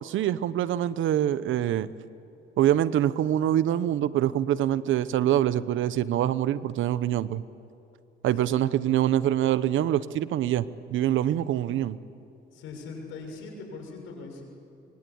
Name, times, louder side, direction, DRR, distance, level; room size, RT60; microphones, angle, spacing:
voice 1, 0.0-1.9 2.6-7.4 8.2-12.0, right 11 dB, 80° right, 15 dB, 1.0 m, -25 dB
voice 2, 12.5-14.4, left 4 dB, 90° left, 2 dB, 6.7 m, -41 dB
25.5 x 24.5 x 8.6 m, 2.8 s
cardioid pair, 90°, 20 cm